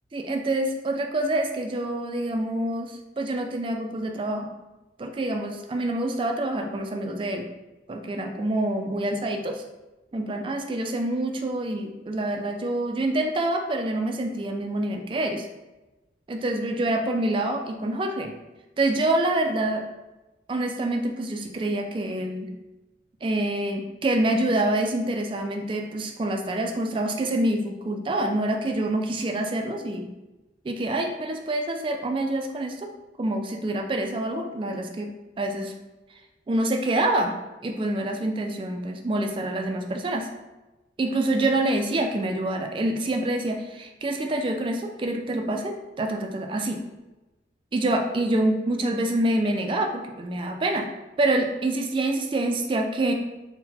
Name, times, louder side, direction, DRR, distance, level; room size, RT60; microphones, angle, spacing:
voice 1, 0.1-4.5 5.0-7.5 7.9-9.6 10.1-15.5 16.3-18.3 18.8-19.8 20.5-22.5 23.2-30.1 30.6-32.9 33.2-35.1 35.4-35.7 36.5-37.4 37.6-40.3 41.0-46.8 47.7-50.9 51.2-53.1, right 1 dB, 30° right, 4 dB, 0.3 m, -26 dB
3.9 x 2.1 x 4.1 m, 1.1 s
head